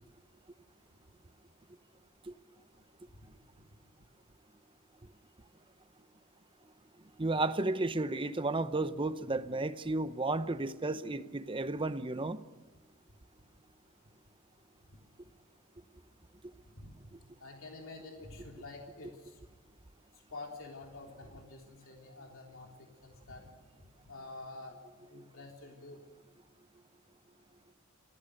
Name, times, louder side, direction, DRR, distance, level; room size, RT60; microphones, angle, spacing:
voice 1, 7.2-12.4, right 2 dB, 25° right, 0.8 m, -33 dB
voice 2, 14.9-15.3 16.7-16.9 17.4-19.4 20.1-23.5 24.0-24.8 25.1-26.0, left 2 dB, 60° left, 3.6 m, -48 dB
29.5 x 15.5 x 6.6 m
head